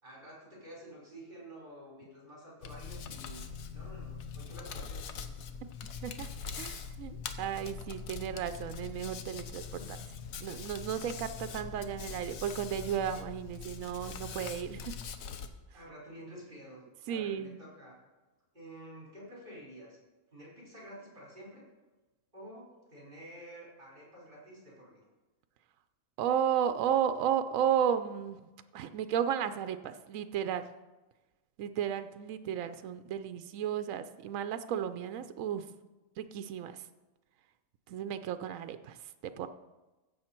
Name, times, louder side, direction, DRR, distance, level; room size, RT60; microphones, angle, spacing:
voice 1, 0.0-3.4 3.7-5.1 9.7-9.9 15.7-18.0 18.5-20.0 20.3-21.6 22.3-25.0, right 1 dB, 40° right, -5 dB, 4.9 m, -50 dB
Hands, 2.6-15.5, left 6 dB, 85° left, 1.2 m, -42 dB
voice 2, 6.6-9.8 10.4-15.0 17.1-17.6 26.2-28.4 28.7-30.7 31.6-35.7 36.2-36.7 37.9-39.0 39.4-39.5, right 9 dB, 75° right, 10 dB, 1.0 m, -33 dB
15.5 x 7.1 x 4.4 m, 1.1 s
omnidirectional pair, 1.4 m